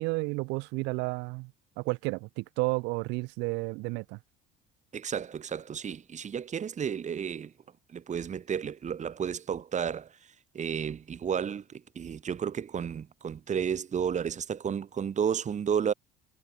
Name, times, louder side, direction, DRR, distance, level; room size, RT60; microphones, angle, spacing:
voice 1, 0.0-1.5 1.8-4.2, right 27 dB, 75° right, 4.1 m, -31 dB
voice 2, 4.9-7.5 7.9-10.1 10.6-15.9, right 7 dB, 40° right, 3.5 m, -32 dB
hypercardioid pair, 70°, 18 cm